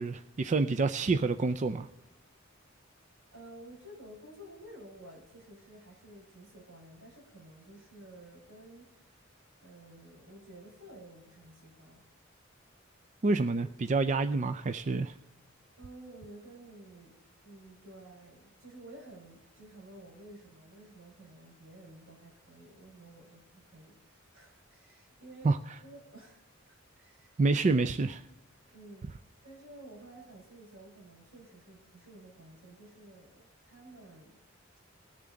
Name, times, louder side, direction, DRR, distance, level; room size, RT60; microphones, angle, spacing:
voice 1, 0.0-1.9 13.2-15.1 25.4-25.6 27.4-28.2, right 3 dB, 35° right, 10 dB, 0.4 m, -28 dB
voice 2, 3.3-9.2 9.6-12.0 15.8-25.5 25.8-27.4 27.7-27.8 28.7-29.1 29.4-34.4, right 1 dB, 75° right, -2 dB, 4.9 m, -52 dB
19.5 x 7.0 x 3.8 m, 0.97 s
head